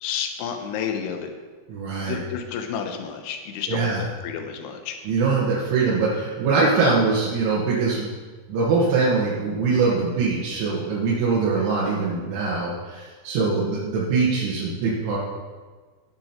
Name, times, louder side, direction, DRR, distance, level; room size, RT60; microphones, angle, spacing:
voice 1, 0.0-1.3 2.0-5.0, left 7 dB, 75° left, 5 dB, 2.6 m, -31 dB
voice 2, 1.7-2.2 3.7-4.0 5.1-8.1 8.5-15.2, right 4 dB, 75° right, -7 dB, 3.9 m, -22 dB
18.0 x 6.1 x 4.5 m, 1.4 s
omnidirectional pair, 5.7 m